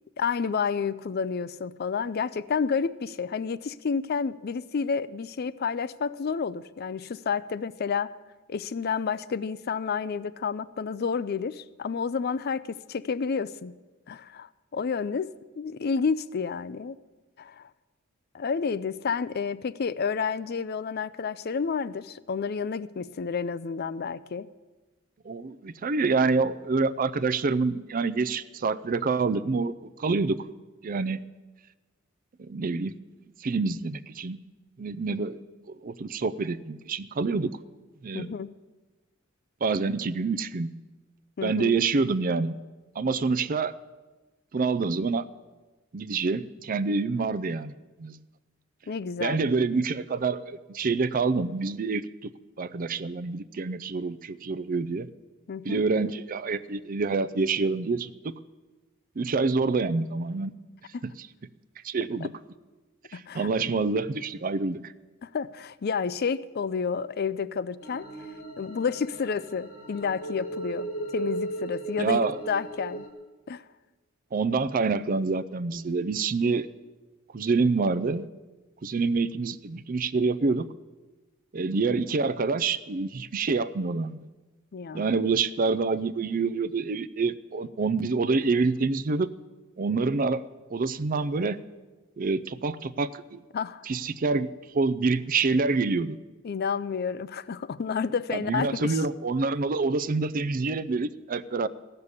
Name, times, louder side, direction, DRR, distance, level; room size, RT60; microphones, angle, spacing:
voice 1, 0.2-8.1 8.5-13.7 14.1-17.0 17.4-17.7 18.3-24.5 38.1-38.5 41.4-41.7 48.9-49.4 55.5-55.8 60.9-61.1 63.1-63.5 65.2-68.1 68.6-72.2 72.5-73.1 73.5-73.6 84.7-85.1 93.5-93.8 96.4-99.0, left 5 dB, 50° left, 16 dB, 0.4 m, -30 dB
voice 2, 25.2-30.4 30.8-31.2 32.4-33.0 33.4-34.4 34.8-35.4 35.7-37.5 38.0-38.3 39.6-40.7 41.4-42.5 43.0-43.7 44.5-45.2 45.9-47.7 48.0-48.2 49.2-52.3 52.6-55.1 55.6-58.3 59.2-60.5 61.8-62.3 63.1-64.8 72.0-72.4 74.3-76.7 77.3-78.3 78.8-80.7 81.5-84.2 84.9-89.3 89.8-90.4 90.7-91.6 92.2-93.4 93.8-94.5 94.7-96.2 98.3-101.7, right 4 dB, 45° right, 14 dB, 0.5 m, -27 dB
sound 1, 67.8-73.1, right 2 dB, 85° left, 1.8 m, -36 dB
15.5 x 6.7 x 9.7 m, 1.2 s
head